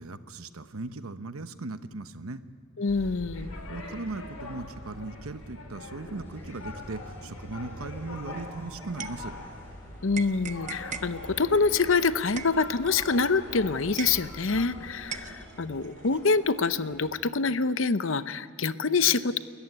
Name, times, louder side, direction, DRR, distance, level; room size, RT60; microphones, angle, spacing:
voice 1, 0.0-2.4 3.7-9.3, right 2 dB, 80° right, 11 dB, 1.0 m, -38 dB
voice 2, 2.8-3.5 10.0-19.4, left 4 dB, 65° left, 13 dB, 0.8 m, -26 dB
sound 1, 2.9-15.4, left 2 dB, 85° left, 3.8 m, -43 dB
sound 2, 6.2-17.1, equal, 10° left, 4.5 m, -50 dB
sound 3, 8.3-9.8 10.1-14.7 15.1-16.2, right 6 dB, 35° right, 0.8 m, -41 dB
29.5 x 14.0 x 9.7 m, 2.3 s
head